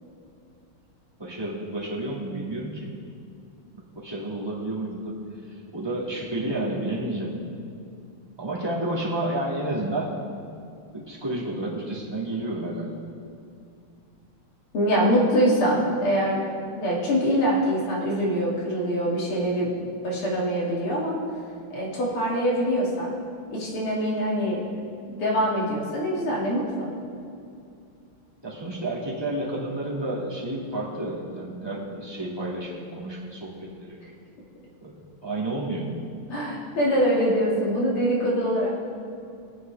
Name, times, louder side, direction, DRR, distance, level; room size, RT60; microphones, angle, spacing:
voice 1, 1.2-2.9 3.7-7.4 8.4-10.1 10.9-12.9 28.4-34.0 34.8-35.9, right 1 dB, 10° right, -6 dB, 1.9 m, -31 dB
voice 2, 14.7-16.4 16.8-19.7 20.0-21.2 21.7-23.1 23.5-24.6 25.1-26.9 36.3-38.7, equal, 80° left, -4 dB, 3.2 m, -24 dB
19.5 x 9.4 x 3.4 m, 2.5 s
omnidirectional pair, 2.4 m